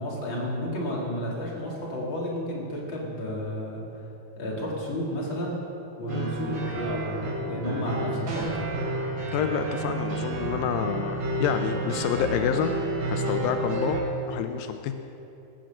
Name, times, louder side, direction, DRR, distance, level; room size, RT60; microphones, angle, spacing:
voice 1, 0.0-3.8 4.4-5.6 6.0-8.7, equal, 35° left, -5 dB, 3.6 m, -31 dB
sound 1, 6.1-14.0, right 2 dB, 90° right, 4.1 m, -30 dB
sound 2, 8.3-8.8, right 3 dB, 75° right, 4.3 m, -34 dB
voice 2, 9.3-12.7 13.1-14.0 14.3-14.9, left 8 dB, 85° left, 7 dB, 2.4 m, -28 dB
18.0 x 7.6 x 7.8 m, 2.9 s
omnidirectional pair, 4.0 m